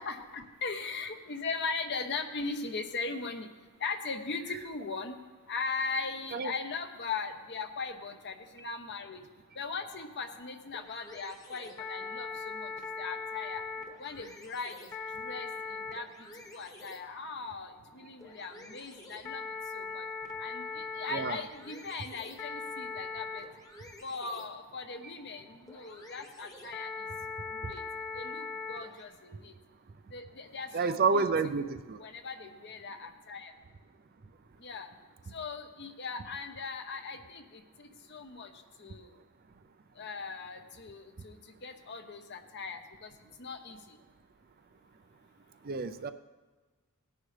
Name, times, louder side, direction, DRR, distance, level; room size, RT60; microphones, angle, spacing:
voice 1, 0.0-3.5 3.8-5.2 5.5-9.2 9.6-12.3 12.5-12.7 13.0-13.6 14.0-14.8 15.2-16.1 16.5-19.4 19.7-20.0 20.4-23.5 24.0-26.9 27.5-27.8 28.1-29.5 30.1-31.3 31.6-33.5 34.6-34.9 35.3-37.4 37.8-38.5 38.8-39.1 40.0-41.3 41.6-43.1 43.4-43.8, left 4 dB, 50° left, 6 dB, 1.0 m, -39 dB
sound 1, 10.0-29.0, left 4 dB, 15° left, 1.1 m, -42 dB
voice 2, 21.1-21.4 30.7-32.0 45.6-46.1, right 4 dB, 45° right, 10 dB, 0.5 m, -29 dB
18.0 x 9.9 x 3.3 m, 1.3 s
head